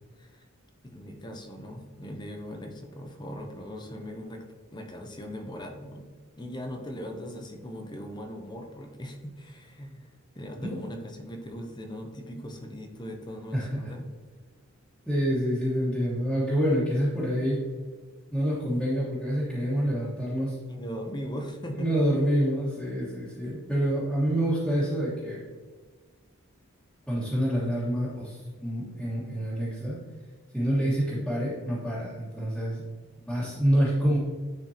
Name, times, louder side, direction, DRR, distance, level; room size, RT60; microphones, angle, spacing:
voice 1, 0.9-4.5 4.7-6.1 6.4-14.0 20.7-21.9, equal, 20° left, 4 dB, 0.7 m, -39 dB
voice 2, 13.5-13.9 15.1-17.6 18.3-20.6 21.7-25.4 27.1-30.0 30.5-32.8 33.2-34.2, equal, ahead, -12 dB, 1.5 m, -27 dB
10.0 x 4.4 x 2.8 m, 1.4 s
head